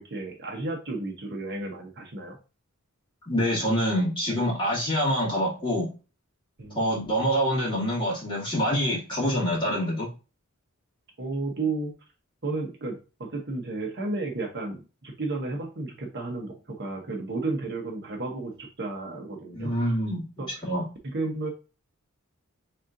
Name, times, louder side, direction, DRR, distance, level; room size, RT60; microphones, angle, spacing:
voice 1, 0.0-2.4 6.6-6.8 11.2-11.9 12.4-19.7 20.4-20.7 21.0-21.5, right 3 dB, 50° right, 2 dB, 0.8 m, -33 dB
voice 2, 3.3-5.9 6.7-10.1 19.5-20.9, equal, 20° left, -6 dB, 2.2 m, -26 dB
4.2 x 3.7 x 2.5 m, 0.32 s
head